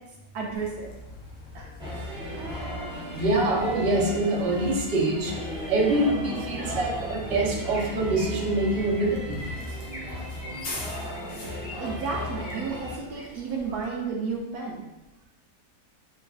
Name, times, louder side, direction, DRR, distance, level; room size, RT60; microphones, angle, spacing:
voice 1, 0.3-0.9 1.5-1.7 2.3-2.5 11.8-14.8, right 5 dB, 80° right, -3 dB, 1.2 m, -32 dB
Bus, 0.5-13.8, left 2 dB, 85° left, 1.4 m, -43 dB
sound 1, 1.8-13.0, equal, 5° right, 0.6 m, -36 dB
voice 2, 3.1-5.3 5.7-9.4, right 2 dB, 45° right, -2 dB, 0.9 m, -25 dB
Chirp tweet, 7.3-7.8 8.1-8.4 8.7-9.0 9.3-10.1 10.4-11.7 12.0-12.6 13.0-13.3 13.7-14.0, left 1 dB, 40° left, 1.6 m, -43 dB
6.8 x 2.5 x 2.3 m, 0.96 s
omnidirectional pair, 1.6 m